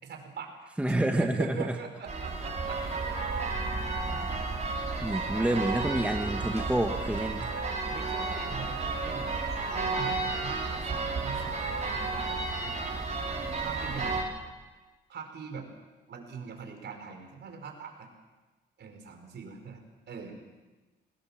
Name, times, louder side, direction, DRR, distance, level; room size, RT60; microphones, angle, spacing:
voice 1, 0.0-2.8 7.9-9.3 9.7-12.9 13.6-14.2 15.1-15.7 16.1-18.1 18.8-20.4, right 5 dB, 60° right, 4 dB, 5.2 m, -42 dB
voice 2, 0.8-1.7 5.0-7.5, right 1 dB, 5° right, 5 dB, 1.5 m, -28 dB
sound 1, 2.1-14.2, right 3 dB, 35° right, 6.2 m, -32 dB
23.0 x 19.0 x 7.4 m, 1.2 s
cardioid pair, 90°, 20 cm